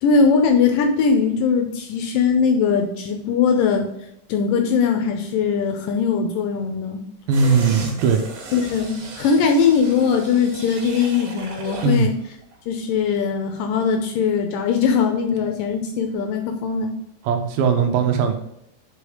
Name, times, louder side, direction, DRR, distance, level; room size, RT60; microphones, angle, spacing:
voice 1, 0.0-3.9 4.3-7.0 8.5-12.1 12.7-16.9, left 5 dB, 75° left, 4 dB, 2.1 m, -20 dB
sound 1, 7.3-12.1 12.4-12.5, right 4 dB, 60° right, 3.2 m, -36 dB
voice 2, 7.3-8.2 11.8-12.1 17.2-18.3, right 5 dB, 75° right, 4 dB, 2.5 m, -19 dB
5.5 x 5.2 x 4.9 m, 0.82 s
omnidirectional pair, 4.4 m